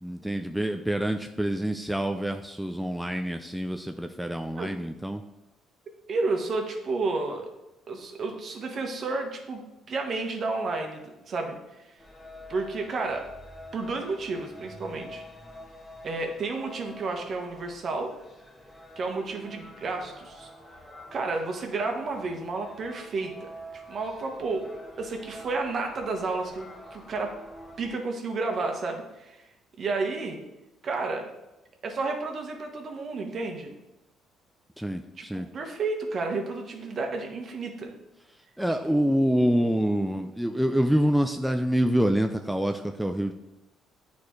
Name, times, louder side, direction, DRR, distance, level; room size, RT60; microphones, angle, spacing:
voice 1, 0.0-5.2 34.8-35.5 38.6-43.3, equal, ahead, 5 dB, 0.4 m, -26 dB
voice 2, 6.1-7.5 7.9-9.6 9.9-11.6 12.5-13.3 13.7-15.2 16.0-18.1 19.0-20.5 21.1-23.5 23.9-24.6 25.0-27.3 27.8-29.4 29.8-30.4 30.8-31.3 31.8-33.8 35.2-35.3 35.5-37.9 38.8-39.0, right 3 dB, 50° right, 3 dB, 1.3 m, -31 dB
sound 1, 12.0-27.9, equal, 15° left, 1.4 m, -47 dB
9.2 x 4.2 x 3.2 m, 0.96 s
cardioid pair, 85°, 0 cm